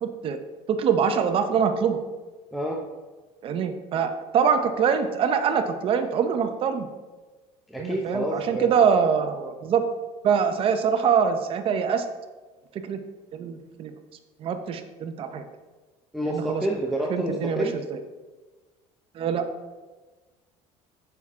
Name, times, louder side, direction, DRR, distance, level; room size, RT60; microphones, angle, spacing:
voice 1, 0.0-0.4 0.7-2.0 3.4-6.9 7.8-9.9 10.2-12.1 12.8-13.0 13.3-13.9 14.4-15.4 16.3-16.6 17.1-18.0 19.1-19.5, right 7 dB, 40° right, 8 dB, 0.7 m, -24 dB
voice 2, 7.7-8.7 16.1-17.7, right 1 dB, ahead, -2 dB, 0.6 m, -28 dB
7.0 x 5.9 x 3.6 m, 1.3 s
cardioid pair, 130°, 14 cm